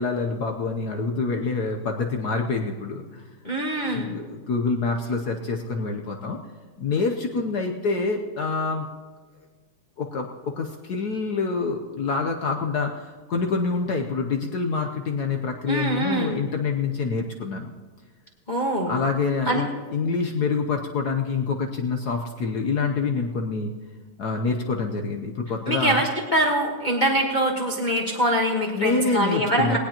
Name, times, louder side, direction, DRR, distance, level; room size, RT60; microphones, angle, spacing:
voice 1, 0.0-3.3 3.8-6.4 6.8-8.9 10.0-17.7 18.9-23.7 24.2-26.0 28.7-29.8, left 4 dB, 60° left, 3 dB, 1.1 m, -26 dB
voice 2, 3.4-4.1 15.7-16.4 18.5-18.9 19.5-19.7 25.7-29.8, right 1 dB, 25° left, -1 dB, 1.3 m, -23 dB
19.0 x 18.0 x 2.9 m, 1.4 s
omnidirectional pair, 2.4 m